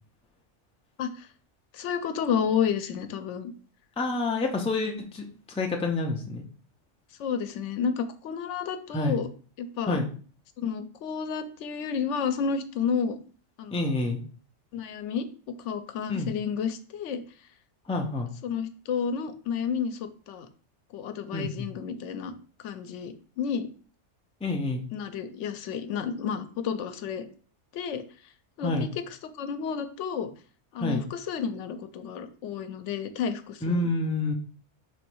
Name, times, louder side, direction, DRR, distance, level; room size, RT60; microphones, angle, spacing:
voice 1, 1.7-3.5 7.2-9.3 9.6-10.0 10.6-13.2 13.6-13.8 14.7-17.2 18.4-20.5 20.9-22.3 22.6-23.7 24.9-27.3 27.7-28.0 28.6-28.9 29.4-30.3 30.7-33.9, left 7 dB, 85° left, 10 dB, 0.9 m, -31 dB
voice 2, 4.0-6.4 8.9-9.2 9.9-10.1 13.7-14.2 16.1-16.3 17.9-18.3 21.3-21.7 24.4-24.8 28.6-28.9 30.7-31.0 33.6-34.3, left 2 dB, 10° left, 2 dB, 0.4 m, -28 dB
3.7 x 3.1 x 4.5 m, 0.42 s
omnidirectional pair, 1.2 m